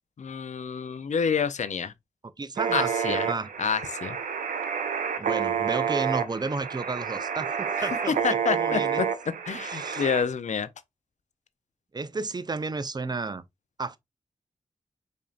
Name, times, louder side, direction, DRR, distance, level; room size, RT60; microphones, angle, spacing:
voice 1, 0.2-1.9 2.7-3.3 3.6-4.2 7.8-9.1 9.5-10.7, left 6 dB, 65° left, 0.4 m, -28 dB
voice 2, 2.4-3.5 5.2-8.2 8.5-9.0 9.6-10.1 11.9-13.4 13.8-14.0, right 3 dB, 30° right, 0.4 m, -32 dB
sound 1, 2.6-10.2, right 7 dB, 90° right, 0.5 m, -29 dB
5.0 x 2.7 x 2.4 m
cardioid pair, 40°, 13 cm